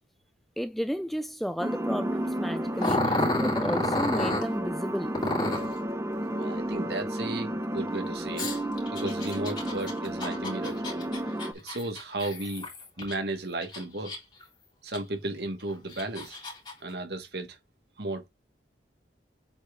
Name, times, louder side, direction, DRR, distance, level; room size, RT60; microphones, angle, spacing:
voice 1, 0.6-5.1, equal, ahead, 0.4 m, -32 dB
sound 1, 1.6-11.5, right 1 dB, 15° right, 0.9 m, -32 dB
Growling, 2.8-4.5 5.1-5.7 8.4-13.1 13.6-14.4 14.9-15.0 15.7-16.7, left 2 dB, 25° left, 3.7 m, -31 dB
voice 2, 6.3-8.6 8.9-10.8 11.6-12.7 13.0-14.1 14.8-16.4 16.8-17.6 18.0-18.3, right 2 dB, 65° right, 2.2 m, -34 dB
8.0 x 4.4 x 3.6 m
head